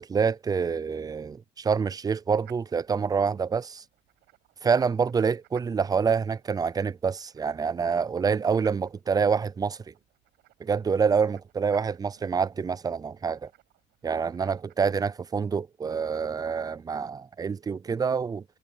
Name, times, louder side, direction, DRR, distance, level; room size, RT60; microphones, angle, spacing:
voice 1, 0.0-3.8 4.6-9.8 10.6-13.5 14.0-18.4, right 6 dB, 20° right, 0.4 m, -27 dB
sound 1, 2.4-14.8, right 18 dB, 90° right, 6.0 m, -60 dB
cardioid pair, 110°, 17 cm